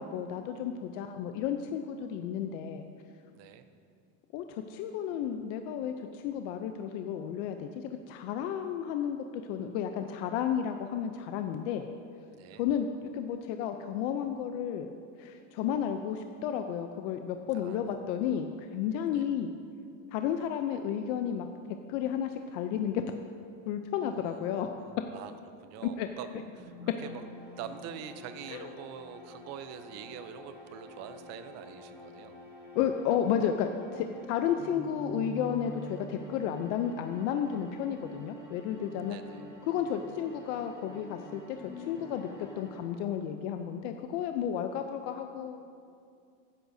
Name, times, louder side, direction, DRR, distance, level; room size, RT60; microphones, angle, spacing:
voice 1, 0.0-2.8 4.3-9.2 9.5-11.9 12.6-12.9 13.1-14.9 15.2-19.5 20.1-21.5 21.9-23.0 23.7-24.7 26.0-26.1 28.5-28.7 32.8-39.2 39.7-42.3 42.6-45.6, left 9 dB, 70° left, 6 dB, 0.6 m, -32 dB
voice 2, 3.3-3.6 12.3-12.6 17.5-18.0 19.1-19.3 24.1-25.3 25.6-27.2 27.6-32.4 39.0-39.4, right 9 dB, 40° right, 10 dB, 0.6 m, -45 dB
sound 1, 26.6-43.3, equal, 5° right, 2.3 m, -48 dB
15.0 x 9.9 x 2.7 m, 2.4 s
cardioid pair, 170°, 39 cm